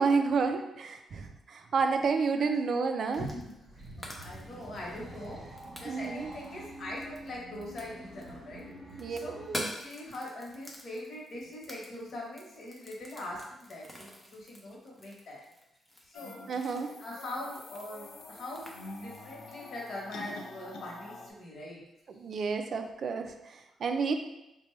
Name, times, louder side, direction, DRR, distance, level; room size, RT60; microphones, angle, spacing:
voice 1, 0.0-3.3 5.8-6.3 9.0-9.2 9.5-9.7 16.5-16.9 22.1-24.1, right 4 dB, 50° right, 6 dB, 0.3 m, -30 dB
voice 2, 3.1-3.5 3.9-5.4 5.7-9.4 9.7-15.4 16.1-16.4 17.0-21.9, left 1 dB, 55° left, -3 dB, 1.1 m, -42 dB
sound 1, 3.1-3.6 3.8-8.3 8.6-20.1, equal, 5° left, 0.5 m, -47 dB
sound 2, 3.5-9.7, right 1 dB, 25° right, 0.8 m, -47 dB
sound 3, 16.1-21.3, left 2 dB, 80° left, 0.5 m, -46 dB
4.1 x 2.2 x 3.1 m, 0.90 s
cardioid pair, 130°, 0 cm